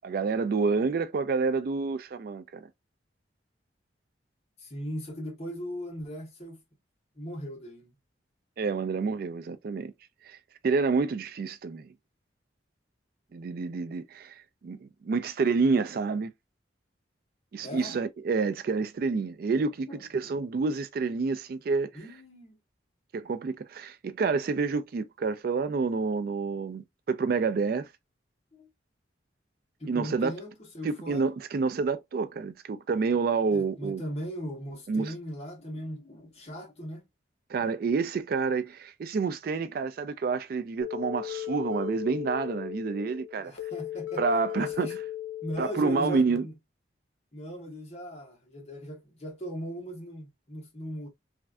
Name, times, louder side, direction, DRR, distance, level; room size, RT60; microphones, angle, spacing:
voice 1, 0.0-2.7 8.6-9.9 10.2-10.4 10.6-11.9 13.3-16.3 17.5-21.9 23.1-27.9 29.9-30.3 30.8-34.0 34.9-35.1 37.5-43.5 44.2-45.0 45.6-46.4, right 4 dB, 50° right, 0.3 m, -28 dB
voice 2, 4.6-6.6 7.1-7.9 17.6-18.0 19.9-20.3 21.9-22.6 28.5-28.7 29.8-31.3 33.5-37.0 43.4-44.2 44.6-44.9 45.4-46.5 47.3-51.1, equal, 35° left, 1.2 m, -38 dB
sound 1, 40.8-46.4, left 13 dB, 90° left, 0.8 m, -37 dB
3.2 x 2.5 x 2.2 m
head